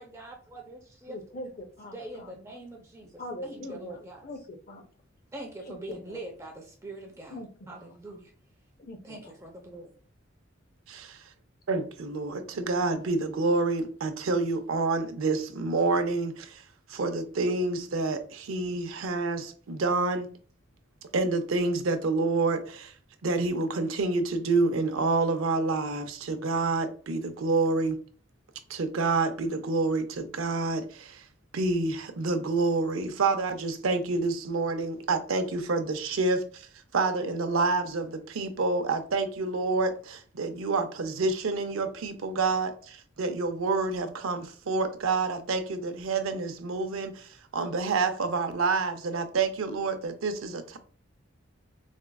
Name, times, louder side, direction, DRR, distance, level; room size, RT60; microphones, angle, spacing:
voice 1, 0.0-1.2 1.9-4.2 5.3-7.4 7.7-8.3 9.0-9.9, right 2 dB, 15° right, 0.5 m, -43 dB
voice 2, 1.1-2.3 3.2-4.9 5.6-6.2 7.3-7.9 8.8-9.3, left 1 dB, 45° left, 0.5 m, -42 dB
voice 3, 11.7-16.6 16.9-20.3 21.1-22.9 23.2-28.0 28.7-31.2 31.5-36.7 36.9-50.8, right 3 dB, 85° right, 0.5 m, -28 dB
4.2 x 2.4 x 2.2 m
head